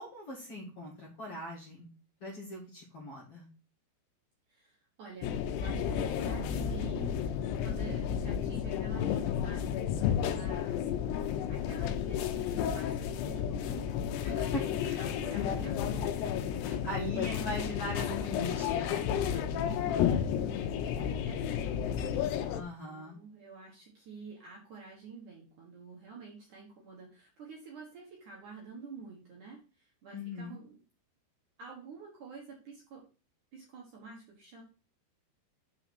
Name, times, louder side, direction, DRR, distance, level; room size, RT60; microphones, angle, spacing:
voice 1, 0.0-1.9 2.2-3.5 14.2-15.0 16.6-19.1 22.5-23.2 30.1-30.6, left 1 dB, 40° left, -4 dB, 2.4 m, -40 dB
voice 2, 4.5-7.2 7.6-13.9 14.3-17.3 19.3-22.1 22.8-30.8 31.6-33.1 33.5-34.6, right 4 dB, 60° right, -2 dB, 2.3 m, -49 dB
sound 1, 5.2-22.6, left 9 dB, 80° left, 2.6 m, -32 dB
6.5 x 4.8 x 6.1 m, 0.36 s
omnidirectional pair, 5.1 m